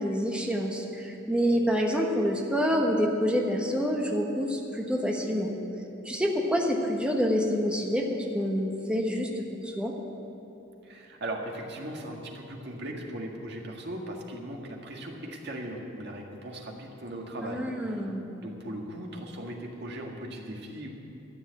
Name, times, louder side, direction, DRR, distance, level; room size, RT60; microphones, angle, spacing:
voice 1, 0.0-5.5 6.0-9.9 17.4-18.2, equal, 5° right, 0 dB, 1.3 m, -27 dB
voice 2, 10.8-18.1 18.4-20.9, right 1 dB, 60° right, 0 dB, 1.9 m, -38 dB
13.0 x 7.1 x 9.9 m, 3.0 s
head